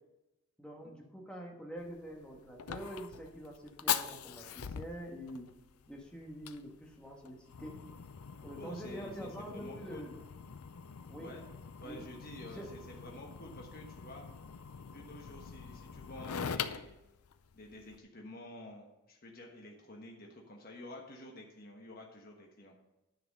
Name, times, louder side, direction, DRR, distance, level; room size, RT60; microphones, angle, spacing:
voice 1, 0.6-5.5 5.9-7.7 8.4-10.2 11.1-11.3 11.8-12.1 12.4-12.7, equal, 5° left, -1 dB, 1.4 m, -46 dB
Fire, 1.8-18.0, left 7 dB, 85° left, 0.5 m, -43 dB
voice 2, 8.6-10.0 11.2-11.5 11.8-14.2 14.9-17.0 17.5-22.8, left 1 dB, 40° left, 0 dB, 1.2 m, -50 dB
10.0 x 6.0 x 5.3 m, 0.95 s
head